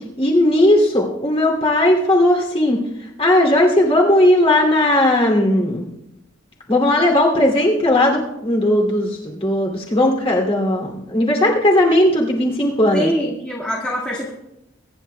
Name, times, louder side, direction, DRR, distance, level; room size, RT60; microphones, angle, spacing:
voice 1, 0.2-2.8 3.2-5.9 6.7-13.1, left 1 dB, 30° left, 0 dB, 2.6 m, -16 dB
voice 2, 12.9-14.3, equal, 5° left, -6 dB, 1.7 m, -23 dB
22.5 x 10.5 x 2.2 m, 0.89 s
head